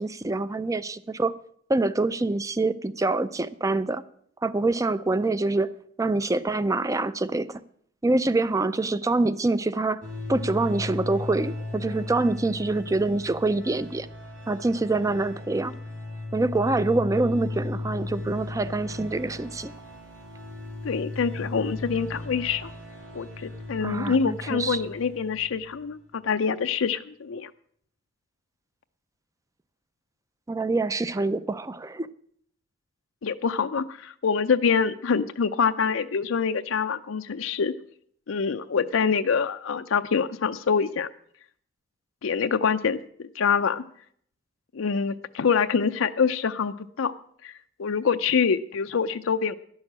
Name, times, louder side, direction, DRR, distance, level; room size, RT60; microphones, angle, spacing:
voice 1, 0.0-1.3 1.7-4.0 4.4-5.7 6.0-7.6 8.0-10.0 10.3-14.1 14.5-15.7 16.3-19.7 23.8-24.8 30.5-32.1, right 2 dB, 15° right, 0.4 m, -25 dB
sound 1, 10.0-25.9, left 2 dB, 75° right, 2.8 m, -36 dB
voice 2, 20.8-22.7 23.1-27.5 33.2-37.7 38.3-41.1 42.2-43.8 44.7-47.1 47.4-49.5, left 6 dB, 90° left, 0.5 m, -25 dB
11.5 x 6.4 x 8.5 m
head